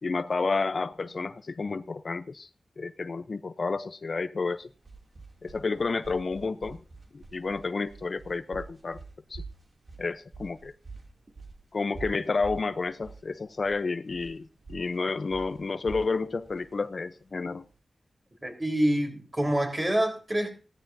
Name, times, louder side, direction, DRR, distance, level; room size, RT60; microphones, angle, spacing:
voice 1, 0.0-2.5 2.8-4.7 5.4-6.8 7.1-9.0 9.3-9.4 10.0-10.7 11.7-17.6, left 4 dB, 60° left, 12 dB, 0.7 m, -30 dB
sound 1, 4.5-17.8, right 4 dB, 50° right, 2.7 m, -47 dB
voice 2, 18.4-20.5, right 1 dB, 30° right, 3 dB, 4.0 m, -26 dB
17.5 x 13.5 x 2.7 m, 0.33 s
cardioid pair, 60°, 0 cm